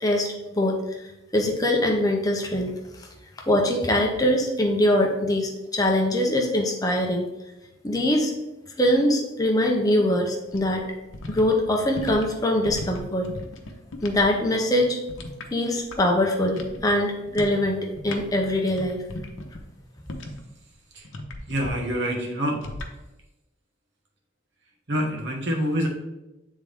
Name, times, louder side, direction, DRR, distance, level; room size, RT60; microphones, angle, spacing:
voice 1, 0.0-0.8 1.3-2.7 3.5-7.3 7.8-8.3 8.8-10.9 11.3-13.3 14.0-15.0 15.5-17.8 18.0-19.0, left 1 dB, 20° left, 1 dB, 0.6 m, -23 dB
sound 1, 10.5-14.3 14.5-16.2 16.4-16.9 17.3-17.6 17.9-20.5 21.0-21.7 22.6-22.9, left 1 dB, 90° left, 0.8 m, -37 dB
voice 2, 21.5-22.6 24.9-25.9, equal, 65° right, 0 dB, 1.3 m, -26 dB
8.1 x 3.6 x 3.4 m, 0.99 s
head